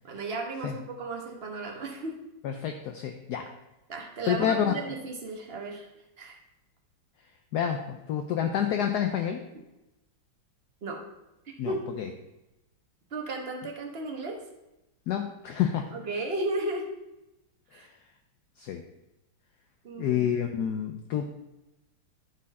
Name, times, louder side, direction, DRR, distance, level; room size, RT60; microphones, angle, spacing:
voice 1, 0.0-2.2 3.9-5.9 6.2-6.3 10.8-11.0 11.6-11.8 13.1-14.4 15.9-16.9 17.7-17.9 19.8-20.2, right 2 dB, 35° right, 1 dB, 1.1 m, -34 dB
voice 2, 2.4-3.5 4.3-4.8 7.5-9.4 11.6-12.1 15.1-15.9 17.7-17.9 18.6-18.8 20.0-21.3, left 9 dB, 70° left, 5 dB, 1.0 m, -28 dB
11.0 x 4.4 x 4.1 m, 0.96 s
omnidirectional pair, 2.1 m